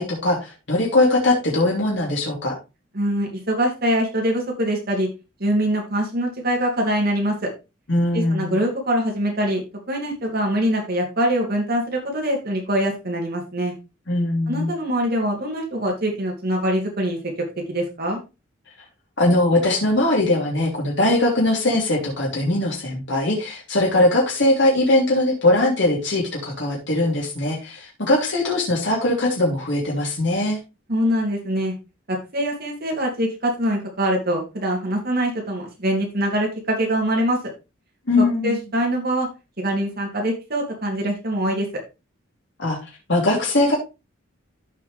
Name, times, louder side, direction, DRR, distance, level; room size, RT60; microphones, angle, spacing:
voice 1, 0.0-2.5 7.9-8.6 14.1-14.7 19.2-30.6 38.1-38.6 42.6-43.8, left 2 dB, 65° left, -3 dB, 3.0 m, -20 dB
voice 2, 2.9-5.1 5.4-7.5 8.1-13.7 14.5-17.3 17.7-18.2 30.9-31.7 32.1-37.4 38.2-39.3 39.6-41.7, right 1 dB, 50° right, 0 dB, 2.8 m, -23 dB
14.0 x 5.0 x 3.3 m, 0.27 s
head